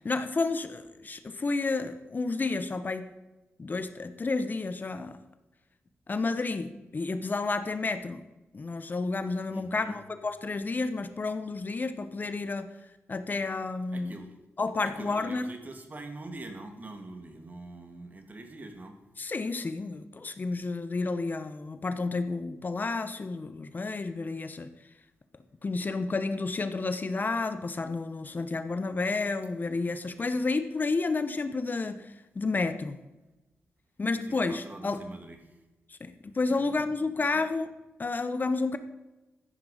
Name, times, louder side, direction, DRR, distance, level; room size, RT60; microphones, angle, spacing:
voice 1, 0.0-3.1 3.6-5.2 6.1-8.2 8.5-12.7 13.1-14.2 14.6-15.5 19.2-24.7 25.6-33.0 34.0-35.0 35.9-37.7 38.0-38.8, left 3 dB, 40° left, 10 dB, 0.9 m, -31 dB
voice 2, 9.5-10.0 13.9-14.3 14.8-18.9 34.1-35.6 36.4-36.9 37.3-37.4, right 2 dB, 35° right, 5 dB, 2.4 m, -44 dB
14.5 x 10.5 x 5.1 m, 1.0 s
cardioid pair, 80°, 5 cm